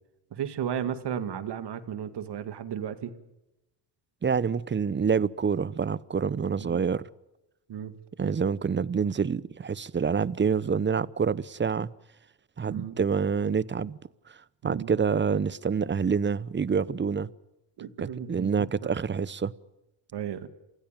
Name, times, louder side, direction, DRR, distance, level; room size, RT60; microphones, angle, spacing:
voice 1, 0.3-3.2 6.6-6.8 7.7-7.9 12.7-13.0 14.6-14.9 17.8-18.9 20.1-20.5, right 9 dB, 60° right, 2.2 m, -34 dB
voice 2, 4.2-7.0 8.2-11.9 12.6-14.0 14.6-17.3 18.0-19.5, right 6 dB, 25° right, 0.8 m, -27 dB
28.0 x 16.0 x 9.2 m
supercardioid pair, 75°, 45 cm